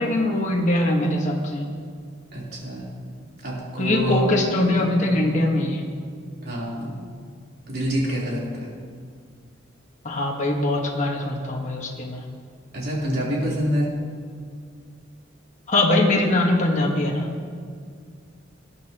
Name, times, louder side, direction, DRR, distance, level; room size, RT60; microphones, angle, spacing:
voice 1, 0.0-1.7 3.8-5.8 10.0-12.2 15.7-17.3, left 1 dB, 40° left, 0 dB, 1.5 m, -22 dB
voice 2, 2.3-2.9 3.4-4.4 5.1-5.3 6.4-6.9 7.7-8.7 12.7-13.9, right 1 dB, 55° right, -5 dB, 3.7 m, -26 dB
19.0 x 11.0 x 3.0 m, 2.1 s
head